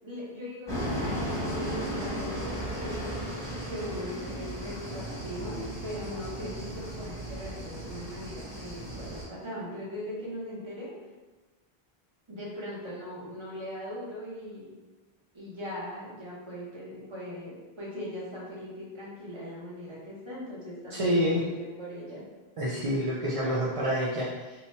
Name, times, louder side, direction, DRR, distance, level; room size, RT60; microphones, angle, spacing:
voice 1, 0.0-3.2 3.7-10.9 12.3-14.7 15.3-22.3, equal, 30° right, -6 dB, 0.9 m, -40 dB
sound 1, 0.7-9.2, equal, 5° left, 1.1 m, -35 dB
voice 2, 20.9-21.4 22.6-24.5, equal, 45° right, -6 dB, 0.4 m, -28 dB
2.8 x 2.2 x 4.1 m, 1.2 s
omnidirectional pair, 1.0 m